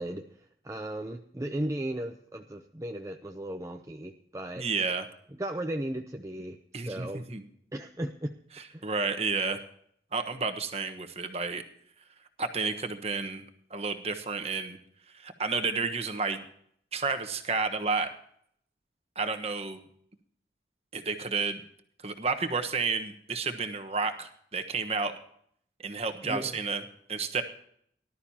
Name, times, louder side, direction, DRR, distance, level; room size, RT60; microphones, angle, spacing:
voice 1, 0.0-4.7 5.4-7.2 7.7-8.4 8.7-8.9 26.2-26.6, right 1 dB, 15° right, 4 dB, 0.6 m, -36 dB
voice 2, 4.6-5.1 6.7-7.4 8.6-9.6 10.1-11.6 12.4-13.4 13.7-14.8 15.1-16.4 16.9-18.1 19.1-19.8 20.9-21.6 22.0-25.1 25.8-26.8 27.1-27.4, right 4 dB, 35° right, 7 dB, 1.2 m, -31 dB
19.0 x 12.0 x 2.8 m, 0.66 s
head